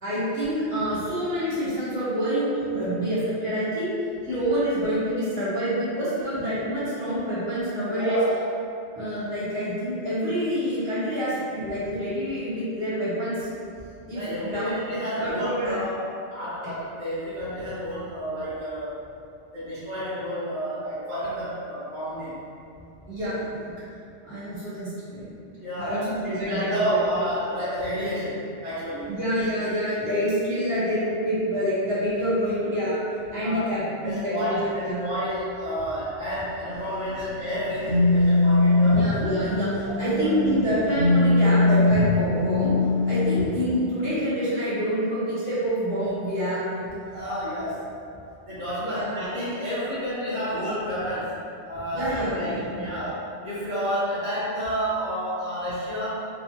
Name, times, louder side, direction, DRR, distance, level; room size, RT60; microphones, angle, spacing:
voice 1, 0.0-3.9 4.2-8.2 8.9-13.5 14.1-14.8 15.2-15.8 23.1-23.7 24.3-25.3 25.8-27.2 29.1-33.0 33.3-35.0 38.8-42.7 43.0-46.9 48.8-49.1 51.9-52.8, equal, 55° right, -12 dB, 1.5 m, -27 dB
voice 2, 7.9-8.3 14.1-19.0 19.5-22.4 25.6-29.1 33.4-33.7 34.0-39.1 39.8-40.4 47.1-47.8 48.4-51.4 51.7-56.2, equal, 40° right, -13 dB, 1.1 m, -30 dB
sound 1, 36.8-40.7 41.0-43.5, left 2 dB, 70° left, 1.1 m, -21 dB
4.2 x 2.5 x 2.8 m, 2.6 s
omnidirectional pair, 1.2 m